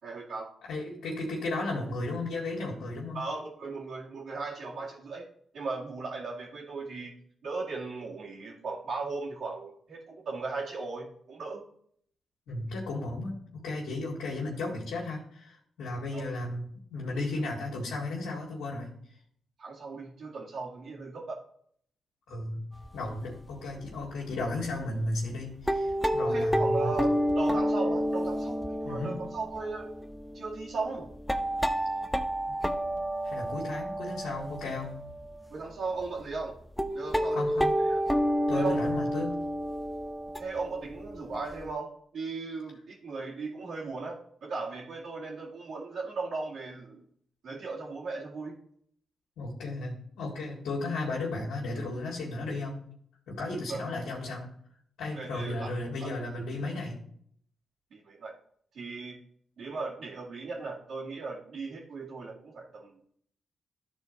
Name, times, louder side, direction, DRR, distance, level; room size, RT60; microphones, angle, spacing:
voice 1, 0.0-0.5 3.1-5.2 5.5-7.1 7.4-11.6 16.1-16.3 19.6-21.4 26.3-29.9 30.3-31.1 35.5-36.6 36.9-38.0 38.5-38.9 40.4-47.0 47.4-48.6 53.7-53.8 55.1-55.7 56.0-56.1 57.9-58.3 58.7-59.2 59.6-63.0, right 4 dB, 70° right, -8 dB, 2.2 m, -37 dB
voice 2, 0.7-3.2 12.5-18.9 22.3-22.6 22.9-27.0 28.8-29.3 32.5-32.6 33.2-34.9 37.3-37.7 38.5-39.3 49.4-52.8 53.3-54.5 55.0-57.0, left 2 dB, 85° left, -4 dB, 2.0 m, -34 dB
sound 1, 22.8-23.1 23.5-23.6 24.0-24.1 24.6-24.7 25.4-35.4 36.0-36.1 36.3-36.4 36.8-41.7, equal, 5° left, 0.9 m, -30 dB
12.5 x 4.3 x 4.0 m, 0.63 s
supercardioid pair, 50°, 0 cm